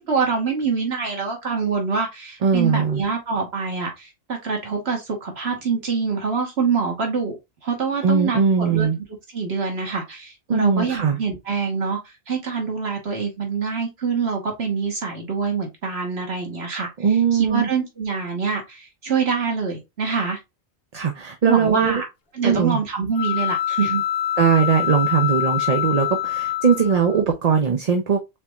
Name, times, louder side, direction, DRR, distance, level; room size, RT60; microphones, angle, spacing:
voice 1, 0.0-8.9 9.3-12.0 12.3-16.9 17.3-20.4 21.5-22.1 22.3-24.0, right 5 dB, 75° right, 1.6 m, -25 dB
voice 2, 2.4-3.0 8.0-9.0 10.5-11.2 17.0-17.7 20.9-22.0 22.4-22.8 24.4-28.4, right 6 dB, 45° right, 0.6 m, -20 dB
sound 1, 23.1-27.2, left 12 dB, 65° left, 0.9 m, -25 dB
4.4 x 4.0 x 2.3 m
omnidirectional pair, 1.1 m